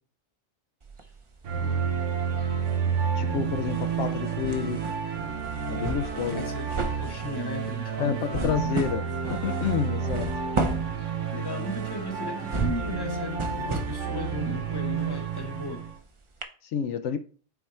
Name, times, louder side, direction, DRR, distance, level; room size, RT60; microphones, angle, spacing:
sound 1, 0.8-1.9 2.2-16.0 16.4-16.5, right 3 dB, 30° right, 0.6 m, -34 dB
sound 2, 1.4-15.9, right 6 dB, 80° right, 1.2 m, -30 dB
voice 1, 3.2-4.9 5.7-6.4 8.0-10.3 16.6-17.2, left 7 dB, 75° left, 0.9 m, -29 dB
voice 2, 6.2-8.6 11.3-15.9, left 2 dB, 20° left, 1.1 m, -37 dB
8.1 x 3.3 x 4.3 m
omnidirectional pair, 1.2 m